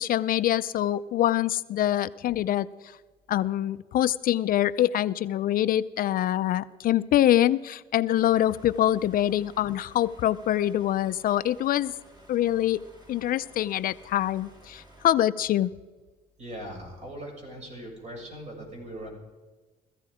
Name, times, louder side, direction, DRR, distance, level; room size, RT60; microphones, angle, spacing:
voice 1, 0.0-2.7 3.3-11.9 12.3-12.8 13.1-15.7, left 12 dB, 55° left, 14 dB, 0.5 m, -24 dB
sound 1, 8.1-15.1, right 1 dB, 25° right, 3.6 m, -54 dB
voice 2, 16.4-19.1, right 1 dB, 40° right, 0 dB, 6.8 m, -40 dB
17.5 x 14.5 x 5.0 m, 1.3 s
cardioid pair, 110°, 17 cm